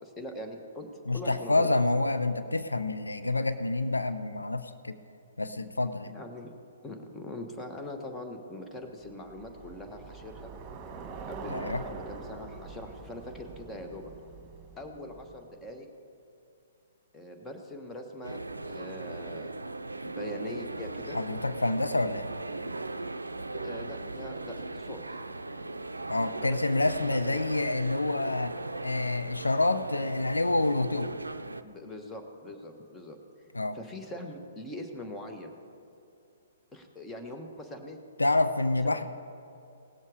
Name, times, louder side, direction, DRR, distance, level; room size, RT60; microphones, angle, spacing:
voice 1, 0.0-0.9 1.1-1.7 6.1-6.5 6.8-10.5 11.2-14.1 14.8-15.9 17.1-19.5 20.0-21.2 23.5-25.0 26.4-27.4 31.6-33.2 33.7-35.5 36.7-38.0 38.8-39.1, left 1 dB, 15° left, 3 dB, 1.3 m, -42 dB
voice 2, 1.1-5.0 5.4-6.1 11.5-11.8 21.1-22.3 26.1-28.5 28.8-31.1 33.5-33.8 38.2-39.1, left 2 dB, 90° left, 10 dB, 0.5 m, -28 dB
Bicycle, 9.0-15.5, right 4 dB, 25° right, 1.6 m, -44 dB
sound 1, 18.2-31.6, right 2 dB, 90° right, 0.5 m, -38 dB
18.0 x 7.3 x 4.9 m, 2.6 s
figure-of-eight pair, 125°, 0 cm